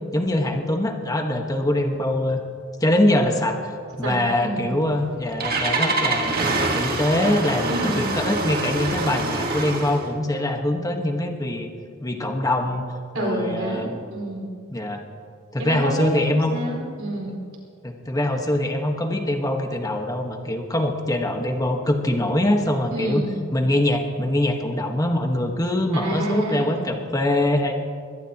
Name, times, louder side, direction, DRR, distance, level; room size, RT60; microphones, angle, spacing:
voice 1, 0.1-2.4 2.8-3.7 4.0-6.4 6.7-11.7 12.0-12.8 13.1-14.0 14.7-15.0 15.5-16.6 17.8-23.2 23.5-27.7, left 1 dB, 15° left, 3 dB, 1.3 m, -23 dB
voice 2, 4.0-4.7 7.7-8.2 13.1-14.5 15.6-16.2 16.5-17.4 22.9-23.4 26.0-26.8, right 1 dB, 90° right, -2 dB, 4.5 m, -28 dB
Engine starting, 4.9-10.1, right 2 dB, 45° right, 1.7 m, -25 dB
23.0 x 17.5 x 2.9 m, 2.2 s
head